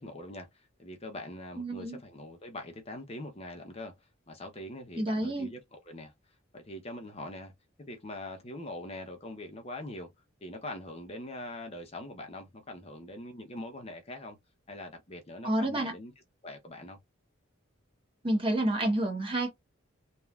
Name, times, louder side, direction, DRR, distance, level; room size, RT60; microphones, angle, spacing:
voice 1, 0.0-6.1 6.5-7.5 7.8-10.1 10.4-14.4 14.7-16.1 16.4-17.0, left 1 dB, 30° left, 0.7 m, -43 dB
voice 2, 1.6-2.0 5.0-5.5 15.4-15.9 18.2-19.5, right 1 dB, 25° right, 1.1 m, -29 dB
3.2 x 2.4 x 2.3 m
head